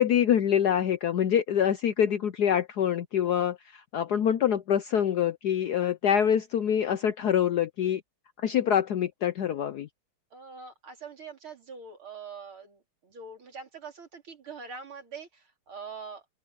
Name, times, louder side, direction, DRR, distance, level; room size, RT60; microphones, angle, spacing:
voice 1, 0.0-8.0 8.4-9.9, left 9 dB, 65° left, 1.0 m, -25 dB
voice 2, 10.3-16.3, right 5 dB, 75° right, 4.5 m, -44 dB
open air
omnidirectional pair, 2.4 m